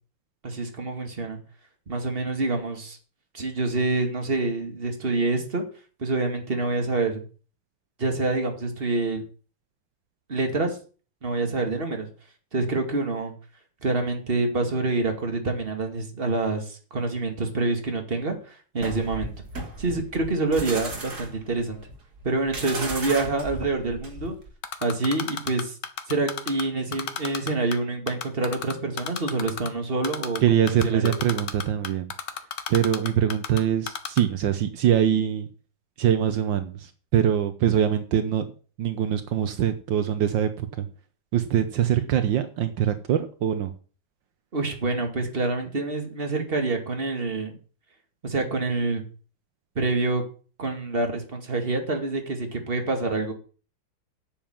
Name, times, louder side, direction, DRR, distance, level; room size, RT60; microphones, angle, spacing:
voice 1, 0.4-1.4 1.9-3.0 3.3-5.6 6.0-7.2 8.0-9.2 10.3-10.8 11.2-12.1 12.5-13.3 13.8-19.3 19.8-21.8 22.2-24.4 24.8-25.8 26.1-31.1 41.9-42.1 44.5-47.6 48.2-49.0 49.8-50.2 50.6-53.3, right 3 dB, 30° right, 4 dB, 2.4 m, -27 dB
sound 1, 18.8-24.5, right 2 dB, 55° right, 2.9 m, -35 dB
Typing, 24.6-26.6 26.9-27.8 28.1-29.7 30.0-30.4 30.7-33.6 33.9-34.2, left 8 dB, 65° left, 1.7 m, -31 dB
voice 2, 30.4-32.1 32.7-35.5 36.0-38.4 38.8-40.9 41.3-43.7, right 9 dB, 75° right, 10 dB, 1.6 m, -23 dB
9.8 x 7.2 x 7.4 m, 0.39 s
omnidirectional pair, 2.1 m